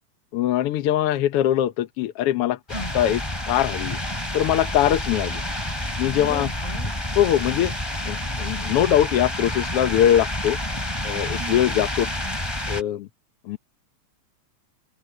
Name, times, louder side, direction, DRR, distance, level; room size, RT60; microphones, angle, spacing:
voice 1, 0.3-2.6 2.9-3.2 3.5-4.0 4.3-5.4 6.0-6.5 7.1-7.7 8.1-10.6 11.0-12.1 12.7-13.1 13.4-13.6, left 11 dB, 70° left, 1.5 m, -22 dB
sound 1, 2.7-12.8, left 1 dB, 10° left, 2.9 m, -29 dB
voice 2, 6.1-7.0 11.4-11.6, equal, 50° left, 7.7 m, -36 dB
open air
omnidirectional pair, 3.4 m